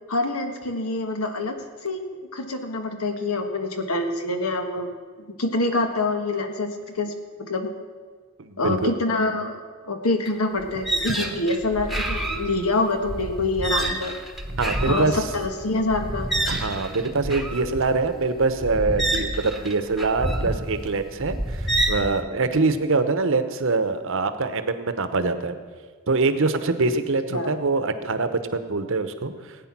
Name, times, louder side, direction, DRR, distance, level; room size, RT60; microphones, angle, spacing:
voice 1, 0.1-2.0 2.3-4.9 5.2-7.1 7.4-7.7 8.6-14.1 14.8-16.3 27.3-27.6, left 2 dB, 85° left, 6 dB, 1.5 m, -26 dB
voice 2, 8.4-8.9 11.2-11.3 14.5-15.2 16.5-25.5 26.1-29.3, right 3 dB, 65° right, 10 dB, 0.9 m, -24 dB
sound 1, 10.3-10.4 10.6-22.1, right 1 dB, ahead, 1.1 m, -28 dB
17.0 x 9.1 x 6.0 m, 1.5 s
head